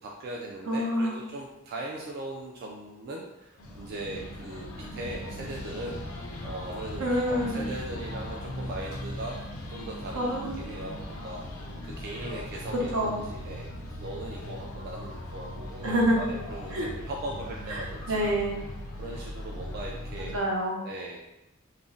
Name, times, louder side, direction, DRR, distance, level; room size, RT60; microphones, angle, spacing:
voice 1, 0.0-9.4 9.7-10.3 10.6-11.4 11.8-13.7 14.0-18.2 19.0-20.3 20.8-21.2, right 2 dB, 50° right, -2 dB, 0.3 m, -39 dB
voice 2, 0.7-1.2 7.0-7.5 10.1-10.6 12.9-13.2 15.8-16.2 16.7-16.9 17.7-18.6 20.3-20.8, equal, 80° right, -2 dB, 0.8 m, -27 dB
sound 1, 3.6-20.4, left 1 dB, 75° left, 0.5 m, -39 dB
2.5 x 2.0 x 3.7 m, 0.92 s
head